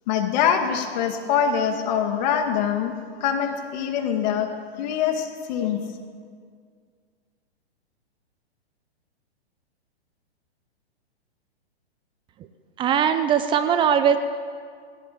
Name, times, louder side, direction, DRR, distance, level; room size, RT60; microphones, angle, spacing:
voice 1, 0.1-4.5 4.8-5.8, left 8 dB, 40° left, 5 dB, 2.1 m, -24 dB
voice 2, 12.8-14.2, right 8 dB, 15° right, 10 dB, 0.6 m, -20 dB
21.0 x 17.5 x 8.6 m, 2.1 s
hypercardioid pair, 145°, 33 cm